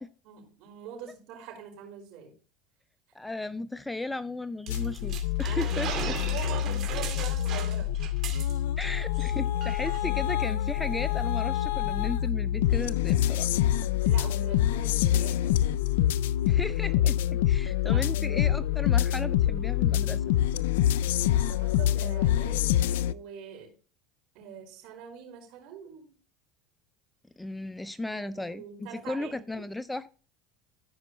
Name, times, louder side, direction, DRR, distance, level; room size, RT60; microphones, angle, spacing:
voice 1, 0.0-2.3 5.4-7.9 14.0-15.6 17.8-18.1 21.3-23.7 24.3-26.2 28.1-29.6, right 8 dB, 65° right, 5.0 m, -43 dB
voice 2, 3.1-6.2 8.8-13.5 16.4-20.3 27.4-30.1, left 2 dB, 5° left, 0.4 m, -36 dB
sound 1, 4.7-23.1, left 12 dB, 85° left, 0.4 m, -26 dB
sound 2, 4.7-8.9 9.1-9.3 9.6-10.0, right 8 dB, 45° right, 2.3 m, -38 dB
14.0 x 5.2 x 3.2 m
supercardioid pair, 120°, 0 cm